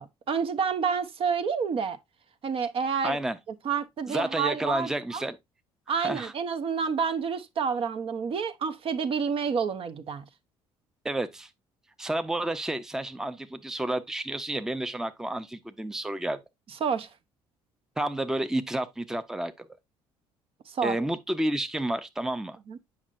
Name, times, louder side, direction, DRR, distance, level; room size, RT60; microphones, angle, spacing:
voice 1, 0.0-2.0 2.4-3.2 3.6-5.2 5.9-10.2 16.8-17.1 20.7-21.0 22.7-22.8, right 6 dB, 50° right, 0.7 m, -29 dB
voice 2, 3.0-3.4 4.1-5.4 5.9-6.3 11.0-11.5 12.0-16.4 18.0-19.7 20.8-22.6, right 1 dB, 5° right, 0.5 m, -30 dB
7.2 x 5.3 x 2.5 m
hypercardioid pair, 65°, 12 cm